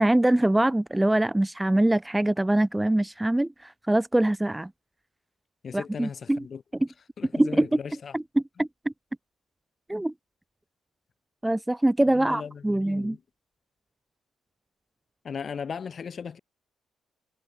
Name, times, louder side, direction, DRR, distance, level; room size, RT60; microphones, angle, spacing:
voice 1, 0.0-4.7 5.7-6.4 7.4-7.7 8.1-8.7 9.9-10.1 11.4-13.2, right 1 dB, 10° right, 0.5 m, -23 dB
voice 2, 5.6-6.6 7.2-8.2 12.1-13.2 15.2-16.4, left 6 dB, 45° left, 1.4 m, -37 dB
cardioid pair, 90°, 0 cm